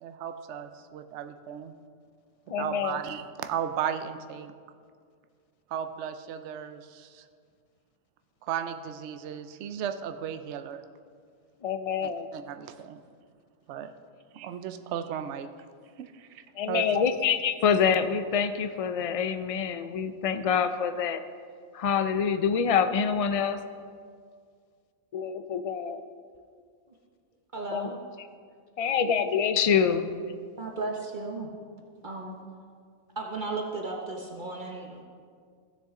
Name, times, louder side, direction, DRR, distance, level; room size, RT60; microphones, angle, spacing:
voice 1, 0.0-1.7 2.6-4.5 5.7-7.2 8.4-10.8 12.0-13.0 13.7-13.9 14.3-15.5 16.0-17.0, right 9 dB, 70° right, 8 dB, 0.9 m, -35 dB
voice 2, 2.5-3.0 11.6-12.3 16.6-21.2 21.7-23.6 25.1-26.0 27.7-27.9 28.8-30.1, left 7 dB, 70° left, 10 dB, 0.3 m, -26 dB
voice 3, 27.5-28.0 29.2-29.3 30.6-31.5 32.0-32.4 33.2-35.0, right 3 dB, 45° right, 0 dB, 1.0 m, -35 dB
16.0 x 6.6 x 3.7 m, 2.1 s
omnidirectional pair, 1.2 m